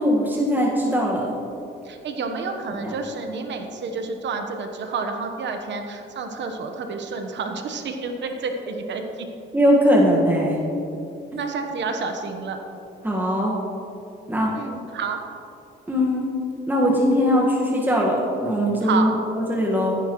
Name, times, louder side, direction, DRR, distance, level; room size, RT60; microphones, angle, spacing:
voice 1, 0.0-1.3 2.8-2.9 9.5-10.6 13.0-13.5 14.3-14.5 15.9-16.3 16.7-20.0, equal, 10° right, -3 dB, 1.6 m, -20 dB
voice 2, 1.8-9.3 11.4-12.6 14.5-15.2 18.8-19.2, right 4 dB, 65° right, 5 dB, 1.2 m, -29 dB
15.0 x 10.0 x 3.1 m, 2.8 s
cardioid pair, 90°, 20 cm